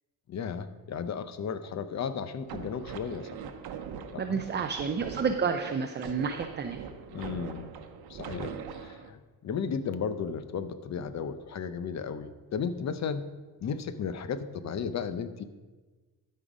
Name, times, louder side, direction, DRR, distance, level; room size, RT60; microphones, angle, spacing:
voice 1, 0.3-3.3 4.1-4.6 7.1-7.7 8.1-13.3 13.6-15.4, left 6 dB, 40° left, 12 dB, 0.7 m, -34 dB
sound 1, 2.4-9.1, right 7 dB, 60° right, 0.9 m, -42 dB
voice 2, 4.2-6.8, right 5 dB, 25° right, 6 dB, 0.5 m, -30 dB
12.5 x 5.5 x 5.0 m, 1.3 s
cardioid pair, 110°, 42 cm